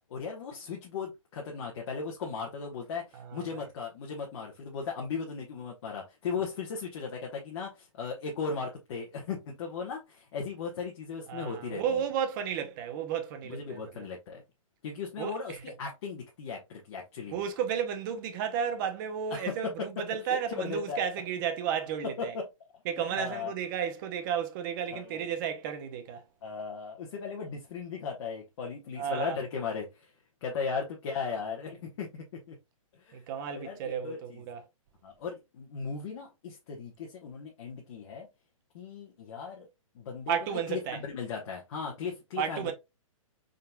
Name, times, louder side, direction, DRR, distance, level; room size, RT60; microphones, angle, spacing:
voice 1, 0.0-12.0 13.4-14.4 14.8-17.5 19.3-19.9 20.3-21.0 22.2-22.5 23.0-23.5 24.9-25.2 26.4-30.1 30.4-32.6 32.9-33.2 33.5-34.4 35.0-38.3 38.7-39.7 39.9-42.7, left 5 dB, 50° left, 1.1 m, -37 dB
voice 2, 3.1-3.7 11.3-14.1 15.2-15.6 17.3-22.3 22.9-26.2 29.0-29.4 33.1-34.6 40.3-41.0 42.4-42.7, right 8 dB, 35° right, 0.8 m, -33 dB
4.2 x 3.8 x 2.2 m
hypercardioid pair, 145°, 18 cm